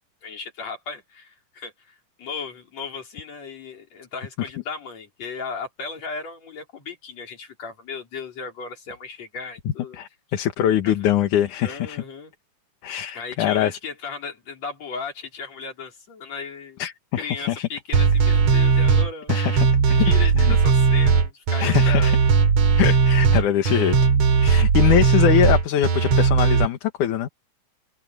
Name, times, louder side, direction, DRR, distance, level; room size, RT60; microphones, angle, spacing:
voice 1, 0.2-10.0 10.8-11.1 11.6-12.3 13.1-16.8 17.2-19.4 20.0-22.2, left 4 dB, 55° left, 5.4 m, -36 dB
voice 2, 9.9-12.0 12.8-13.8 16.8-17.7 19.3-20.6 21.6-22.2 22.8-24.0 24.4-27.3, left 11 dB, 70° left, 2.8 m, -23 dB
sound 1, 17.9-26.7, right 5 dB, 55° right, 3.3 m, -18 dB
open air
omnidirectional pair, 3.7 m